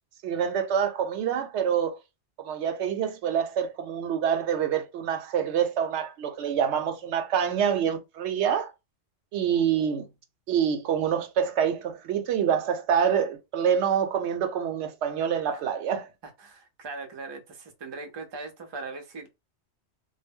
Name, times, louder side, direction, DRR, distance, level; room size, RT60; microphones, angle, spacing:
voice 1, 0.2-2.0 2.4-8.7 9.3-10.1 10.5-16.1, right 8 dB, 85° right, 0.9 m, -26 dB
voice 2, 16.2-19.3, right 3 dB, 35° right, 0.4 m, -40 dB
2.1 x 2.0 x 3.4 m
omnidirectional pair, 1.1 m